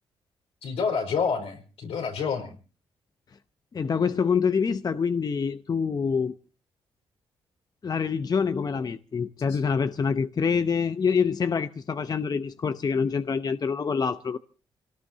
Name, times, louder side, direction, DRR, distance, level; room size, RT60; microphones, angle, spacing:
voice 1, 0.6-2.5 9.5-9.6, left 5 dB, 80° left, 4.6 m, -28 dB
voice 2, 3.7-6.4 7.8-14.4, left 6 dB, 40° left, 0.7 m, -26 dB
27.0 x 18.5 x 2.8 m
cardioid pair, 65°, 10 cm